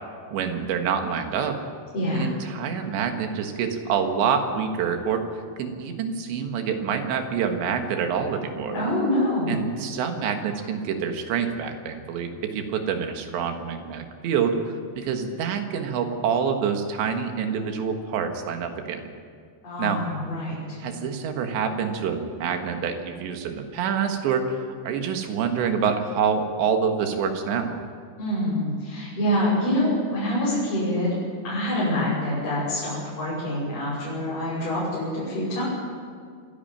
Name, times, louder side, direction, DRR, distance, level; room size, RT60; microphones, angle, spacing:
voice 1, 0.3-1.6 2.1-5.3 5.6-8.8 9.5-19.0 19.8-20.0 20.8-27.8, right 6 dB, 75° right, 5 dB, 3.7 m, -26 dB
voice 2, 1.9-2.3 8.7-9.6 19.6-20.8 28.2-31.1 31.4-35.6, left 1 dB, 45° left, -10 dB, 7.6 m, -26 dB
26.0 x 11.0 x 9.0 m, 2.1 s
omnidirectional pair, 5.3 m